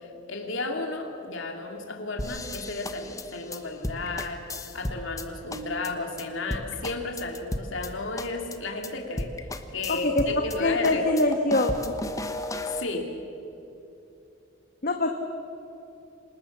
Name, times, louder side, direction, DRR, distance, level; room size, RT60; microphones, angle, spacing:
voice 1, 0.0-9.3 9.7-11.0 12.7-13.1, left 3 dB, 70° left, 2 dB, 2.8 m, -33 dB
sound 1, 2.2-5.2 5.5-5.9 6.2-6.3 6.5-7.9 8.2-8.6 8.8-8.9 9.2-10.6 10.8-12.8, left 1 dB, 15° left, 1.0 m, -34 dB
sound 2, 5.5-6.5, right 2 dB, 55° right, 3.7 m, -42 dB
voice 2, 9.9-10.3 10.6-12.0 14.8-15.1, left 2 dB, 45° left, 4 dB, 1.3 m, -24 dB
26.5 x 19.5 x 7.3 m, 2.8 s
head